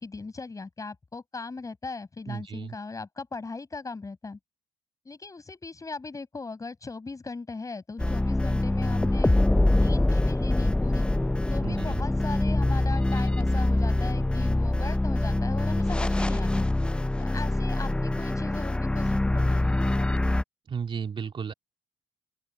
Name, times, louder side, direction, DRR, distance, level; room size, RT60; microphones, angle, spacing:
voice 1, 0.0-4.4 5.0-9.3 9.7-11.1 11.5-16.7 17.2-19.9, left 3 dB, 25° left, 7.7 m, -38 dB
voice 2, 2.3-2.8 11.6-12.0 20.7-21.5, right 6 dB, 40° right, 2.2 m, -34 dB
sound 1, 8.0-20.4, left 1 dB, 5° left, 0.5 m, -24 dB
open air
hypercardioid pair, 50°, 13 cm